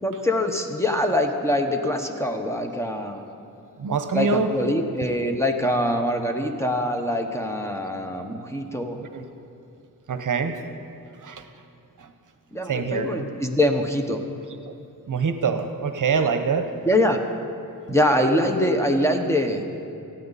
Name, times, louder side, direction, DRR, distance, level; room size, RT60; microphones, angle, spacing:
voice 1, 0.0-3.2 4.1-9.0 12.5-14.2 16.9-17.2 17.9-19.6, left 1 dB, 10° left, 4 dB, 1.1 m, -23 dB
voice 2, 3.8-4.6 9.0-9.3 10.1-10.6 11.1-11.5 12.0-12.1 12.6-13.4 14.6-14.7 15.1-16.8, right 5 dB, 60° right, 8 dB, 1.0 m, -25 dB
19.0 x 14.5 x 4.1 m, 2.7 s
wide cardioid pair, 115°, 35 cm